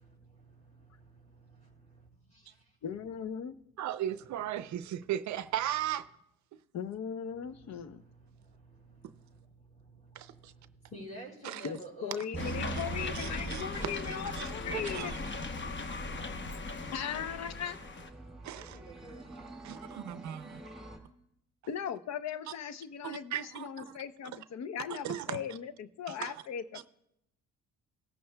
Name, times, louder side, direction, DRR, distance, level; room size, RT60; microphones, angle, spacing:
voice 1, 0.0-2.8 7.4-15.3 18.4-20.1, right 1 dB, 25° left, 4.8 m, -52 dB
voice 2, 2.8-3.6 6.7-8.0 11.6-15.1 16.9-17.8 21.7-26.8, left 8 dB, 60° left, 0.7 m, -38 dB
voice 3, 3.8-6.1 10.2-10.5 11.4-11.6 12.4-15.2 15.9-16.1 18.4-18.8 19.6-20.6 23.0-24.0 24.9-25.4 26.2-26.4, right 11 dB, 70° right, 0.5 m, -37 dB
sound 1, 12.3-14.7, right 7 dB, 15° right, 0.5 m, -42 dB
sound 2, 12.4-18.1, left 3 dB, 40° left, 1.0 m, -38 dB
sound 3, 14.4-21.0, right 2 dB, ahead, 2.5 m, -51 dB
16.5 x 13.5 x 2.2 m
cardioid pair, 90°, 30 cm